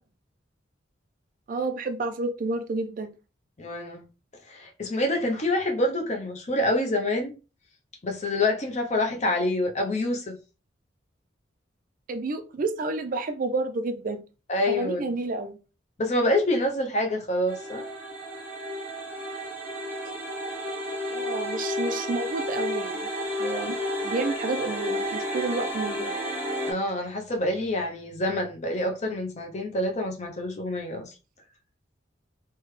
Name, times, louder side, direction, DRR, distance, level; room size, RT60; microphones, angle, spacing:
voice 1, 1.5-3.1 12.1-14.2 14.7-15.6 21.1-23.1 23.4-23.8 24.0-26.1, right 3 dB, 45° right, 0.4 m, -30 dB
voice 2, 3.6-4.0 4.5-7.4 8.0-10.4 14.5-15.1 16.0-17.8 26.7-31.1, left 1 dB, 35° left, 0.7 m, -27 dB
sound 1, 17.5-26.7, equal, 10° right, 0.9 m, -31 dB
3.3 x 2.2 x 3.2 m
head